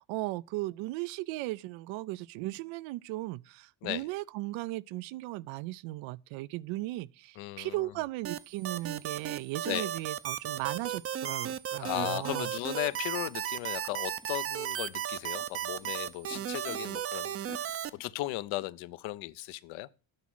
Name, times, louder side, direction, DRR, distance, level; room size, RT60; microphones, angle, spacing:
voice 1, 0.0-12.5, right 19 dB, 75° right, 0.5 m, -37 dB
voice 2, 7.4-7.9 9.7-9.9 11.8-17.7 18.0-19.9, left 17 dB, 75° left, 0.7 m, -36 dB
sound 1, 8.2-17.9, right 10 dB, 30° right, 0.5 m, -35 dB
Animal, 12.9-13.0 13.8-14.3 15.1-16.8 17.5-18.7, left 4 dB, 10° left, 0.6 m, -53 dB
9.7 x 6.2 x 6.0 m
cardioid pair, 120°, 47 cm